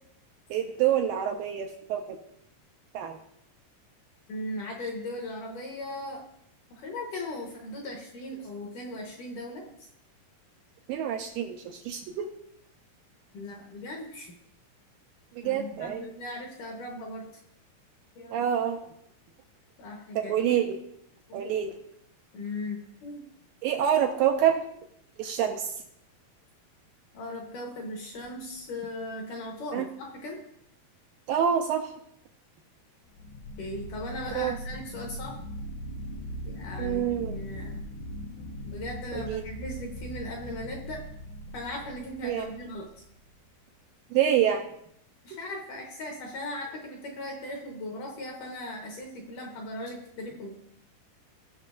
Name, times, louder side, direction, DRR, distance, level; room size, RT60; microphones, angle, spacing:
voice 1, 0.5-2.2 2.9-3.2 10.9-12.3 15.4-16.0 18.3-18.8 20.3-20.8 21.3-21.7 23.6-24.6 25.2-25.7 29.7-29.9 31.3-31.9 34.4-34.5 36.8-37.4 39.1-39.4 42.2-42.5 44.1-44.6, right 9 dB, 80° right, 4 dB, 2.2 m, -26 dB
voice 2, 4.3-6.2 6.7-9.6 13.3-14.3 15.4-17.2 18.2-18.4 19.8-20.4 21.3-21.5 22.3-23.2 27.1-30.4 33.6-35.4 36.5-37.8 38.4-41.0 41.5-42.9 45.2-50.5, left 1 dB, 65° left, 1 dB, 2.3 m, -38 dB
sound 1, 28.2-28.7 33.1-43.3, equal, 80° left, 2.8 m, -40 dB
17.0 x 6.4 x 2.5 m, 0.73 s
omnidirectional pair, 4.6 m